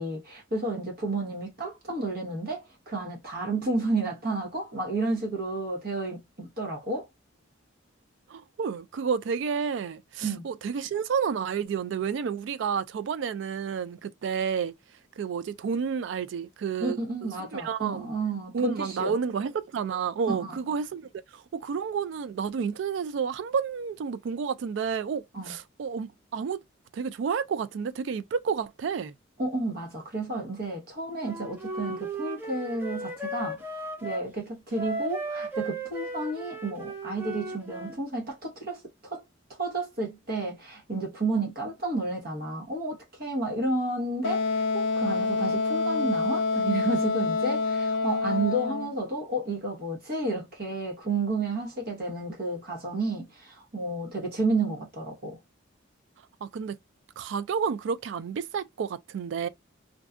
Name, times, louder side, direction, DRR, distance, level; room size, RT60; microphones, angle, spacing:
voice 1, 0.0-7.1 10.2-10.5 16.8-19.1 20.3-20.6 25.3-25.5 29.4-33.6 34.0-39.2 39.6-55.4, right 2 dB, 50° right, 0.8 m, -31 dB
voice 2, 8.3-14.7 15.2-18.1 18.5-26.6 26.9-29.1 56.4-56.8 57.2-59.5, right 6 dB, 65° right, 0.3 m, -30 dB
Wind instrument woodwind instrument, 31.2-34.3 34.7-38.0, right 2 dB, 10° right, 0.5 m, -36 dB
Wind instrument woodwind instrument 2, 44.2-48.9, left 3 dB, 70° left, 0.3 m, -27 dB
2.6 x 2.2 x 2.3 m
head